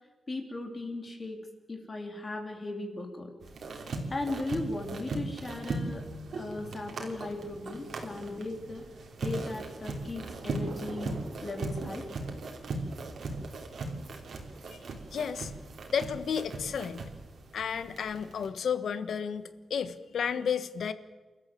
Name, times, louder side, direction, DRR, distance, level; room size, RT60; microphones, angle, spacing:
voice 1, 0.3-1.4 1.7-3.3 4.1-6.1 6.3-8.8 9.2-12.1, left 2 dB, 30° left, 3 dB, 3.5 m, -37 dB
sound 1, 3.4-18.5, right 2 dB, 60° right, 3.4 m, -39 dB
sound 2, 4.6-16.3, right 4 dB, 85° right, 2.4 m, -50 dB
voice 2, 15.1-15.5 15.9-17.0 17.5-20.9, left 7 dB, 75° left, 13 dB, 1.3 m, -32 dB
29.0 x 14.0 x 7.6 m, 1.3 s
wide cardioid pair, 145°, 0 cm